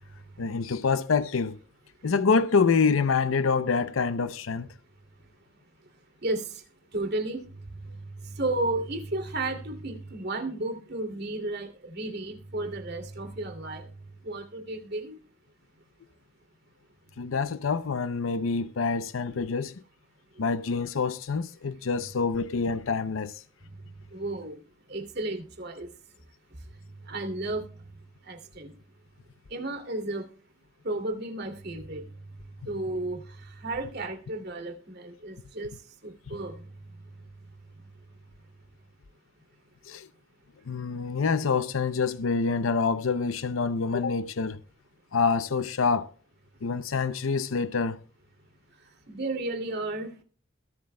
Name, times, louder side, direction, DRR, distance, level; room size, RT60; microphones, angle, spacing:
voice 1, 0.4-1.6 2.0-4.7 17.2-19.7 20.4-23.4 39.8-40.1 40.7-44.6 45.1-46.1 46.6-48.0, left 5 dB, 85° left, 0.6 m, -26 dB
voice 2, 6.2-6.6 6.9-7.4 8.2-13.9 14.2-15.2 24.1-24.6 24.9-25.9 27.1-27.7 28.3-28.7 29.5-30.2 30.8-32.1 32.7-33.2 33.6-35.7 36.0-36.7 49.1-50.2, right 2 dB, 55° right, 2.6 m, -33 dB
21.5 x 7.6 x 2.2 m
head